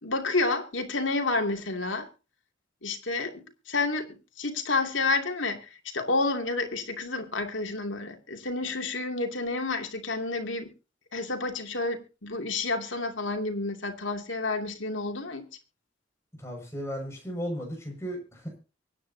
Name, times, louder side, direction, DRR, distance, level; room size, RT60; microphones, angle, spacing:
voice 1, 0.0-2.1 2.8-10.7 11.1-15.5, left 3 dB, 90° left, 2.7 m, -30 dB
voice 2, 16.4-18.6, equal, 15° left, 6.2 m, -35 dB
24.5 x 9.8 x 2.8 m
head